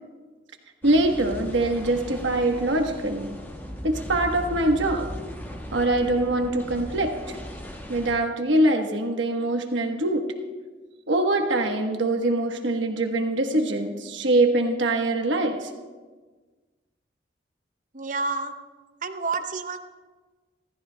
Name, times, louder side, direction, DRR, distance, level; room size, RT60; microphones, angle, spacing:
sound 1, 0.8-8.2, equal, 10° left, 1.4 m, -38 dB
voice 1, 0.8-3.4 3.8-5.1 5.7-7.4 7.9-10.2 11.1-15.7, right 2 dB, 85° right, 3 dB, 1.1 m, -23 dB
voice 2, 17.9-18.5 19.0-19.8, right 4 dB, 45° right, 8 dB, 0.7 m, -29 dB
27.0 x 13.5 x 2.2 m, 1.4 s
head